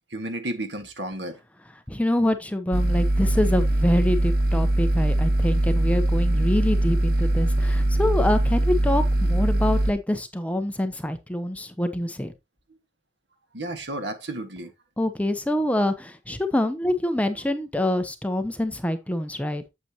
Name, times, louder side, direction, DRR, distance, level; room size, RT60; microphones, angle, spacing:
voice 1, 0.1-1.4 13.5-14.7, right 1 dB, 70° right, 1.6 m, -32 dB
voice 2, 1.9-12.3 15.0-19.7, left 1 dB, 10° left, 0.8 m, -25 dB
sound 1, 2.7-9.9, right 1 dB, 55° right, 1.5 m, -22 dB
8.3 x 7.8 x 2.9 m
head